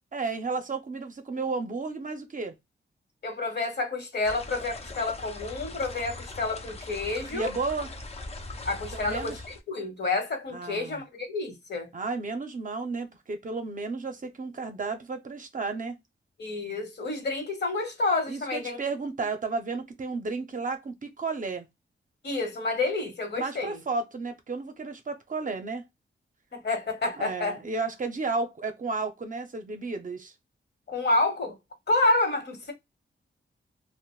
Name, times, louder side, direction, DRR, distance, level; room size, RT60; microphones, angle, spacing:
voice 1, 0.1-2.6 7.3-7.9 8.9-9.4 10.5-11.0 11.9-16.0 18.3-21.7 23.4-25.9 27.2-30.3, right 4 dB, 40° right, 0.6 m, -33 dB
voice 2, 3.2-7.6 8.6-11.9 16.4-18.8 22.2-23.8 26.5-27.6 30.9-31.6 31.9-32.7, left 2 dB, 60° left, 1.1 m, -29 dB
sound 1, 4.2-9.6, left 2 dB, 30° left, 0.5 m, -41 dB
2.5 x 2.1 x 3.0 m
wide cardioid pair, 105°, 20 cm